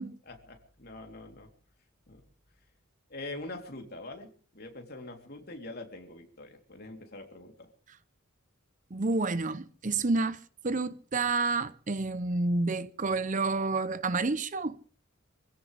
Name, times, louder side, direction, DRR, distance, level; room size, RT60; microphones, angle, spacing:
voice 1, 0.0-1.5 2.1-2.2 3.1-7.7, left 2 dB, 45° left, 3.4 m, -44 dB
voice 2, 8.9-10.4 10.6-14.8, right 3 dB, 35° right, 0.7 m, -29 dB
25.5 x 16.5 x 3.4 m
head